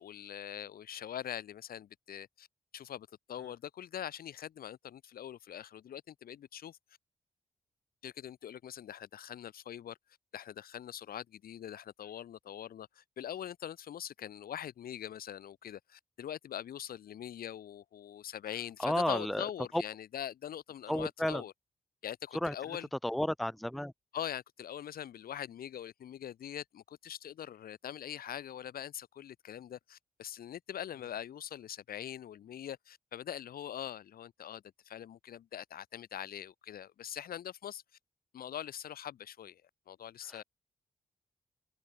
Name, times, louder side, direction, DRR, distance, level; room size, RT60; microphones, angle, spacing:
voice 1, 0.0-2.5 2.7-6.8 8.0-10.0 10.3-21.5 22.0-22.9 24.1-37.8 38.3-39.6 39.9-40.4, left 10 dB, 85° left, 3.3 m, -43 dB
voice 2, 18.8-19.4 19.7-19.8 20.9-21.4 22.4-22.5 23.0-23.9, left 1 dB, ahead, 0.7 m, -31 dB
open air
supercardioid pair, 40°, 15 cm